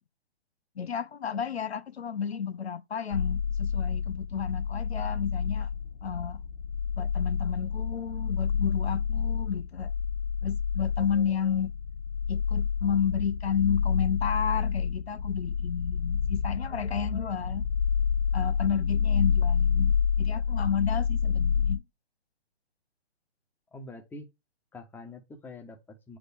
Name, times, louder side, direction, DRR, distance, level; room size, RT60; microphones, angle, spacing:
voice 1, 0.8-5.7 6.0-6.4 7.0-9.9 10.4-11.7 12.3-17.7 18.3-21.8, left 7 dB, 75° left, 0.8 m, -32 dB
sound 1, 3.1-21.8, left 6 dB, 45° left, 2.3 m, -28 dB
voice 2, 23.7-24.3 24.7-26.2, left 2 dB, 5° left, 1.4 m, -45 dB
9.0 x 4.9 x 3.6 m
hypercardioid pair, 140°, 32 cm